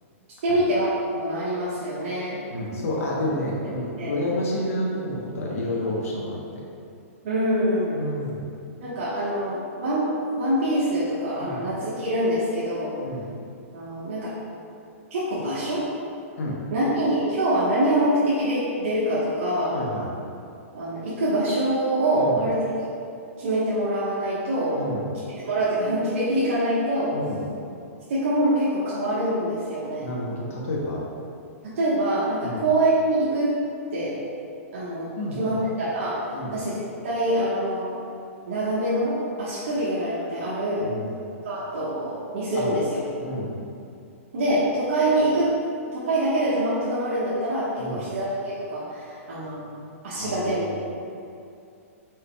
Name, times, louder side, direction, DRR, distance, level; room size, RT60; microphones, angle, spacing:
voice 1, 0.4-2.4 4.0-4.1 7.2-8.0 8.8-12.9 13.7-14.3 15.1-15.9 16.7-19.7 20.7-22.9 23.4-24.8 25.3-27.1 28.1-30.1 31.7-33.5 33.9-34.1 34.7-36.2 36.5-38.0 38.5-40.9 41.4-43.0 44.3-45.5 45.9-49.7 50.0-50.7, right 1 dB, 60° right, -10 dB, 1.2 m, -25 dB
voice 2, 2.5-6.6 7.9-8.4 11.4-11.7 13.0-13.2 16.4-16.5 19.7-20.1 22.2-22.5 24.7-25.0 27.1-27.4 30.0-31.0 32.4-32.6 35.2-35.6 36.3-36.5 40.8-41.1 42.6-42.7 43.2-43.6 47.8-48.0 50.2-50.6, left 1 dB, 70° left, -4 dB, 1.0 m, -30 dB
4.8 x 4.4 x 2.3 m, 2.6 s
hypercardioid pair, 150°, 8 cm